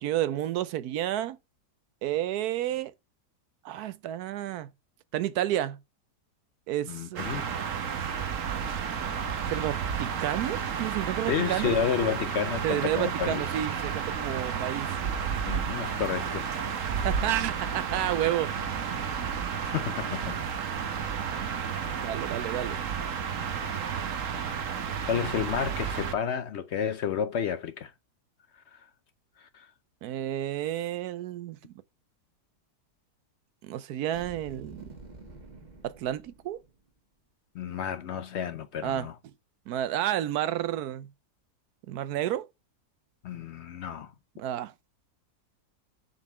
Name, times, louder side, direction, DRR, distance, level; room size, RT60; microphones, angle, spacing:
voice 1, 0.0-1.4 2.0-2.9 3.6-4.7 5.1-5.8 6.7-7.2 9.5-11.8 12.6-14.9 17.0-18.5 22.0-22.8 30.0-31.7 33.6-34.9 35.8-36.6 38.8-39.1 39.7-41.1 41.9-42.5 44.4-44.7, right 12 dB, 75° right, 1.0 m, -30 dB
voice 2, 6.9-7.4 11.3-13.4 15.5-16.5 19.6-20.4 25.1-27.9 29.4-29.7 37.5-39.1 43.2-44.1, left 8 dB, 70° left, 0.6 m, -31 dB
sound 1, 7.2-26.1, right 7 dB, 55° right, 1.2 m, -32 dB
sound 2, 34.1-36.9, right 2 dB, 30° right, 1.4 m, -48 dB
7.5 x 3.8 x 5.9 m
omnidirectional pair, 1.8 m